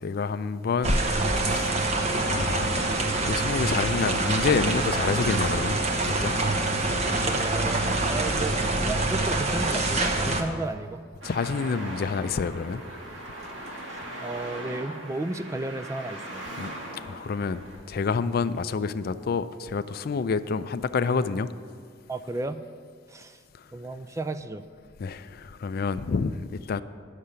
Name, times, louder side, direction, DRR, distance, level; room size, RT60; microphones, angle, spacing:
voice 1, 0.0-1.0 1.4-1.8 2.3-3.0 3.2-5.8 6.0-6.4 10.3-10.5 11.2-12.8 16.6-21.5 25.0-26.8, left 5 dB, 55° left, 13 dB, 0.4 m, -28 dB
sound 1, 0.8-10.4, right 2 dB, 35° right, 1.0 m, -25 dB
voice 2, 7.4-8.6 8.8-11.0 14.2-16.4 22.1-22.6 23.1-23.3 23.7-24.6, right 2 dB, 15° right, 10 dB, 0.4 m, -33 dB
Traffic noise roadway noise, 11.2-17.8, right 1 dB, 85° right, 1.8 m, -39 dB
9.6 x 6.6 x 8.8 m, 2.1 s
head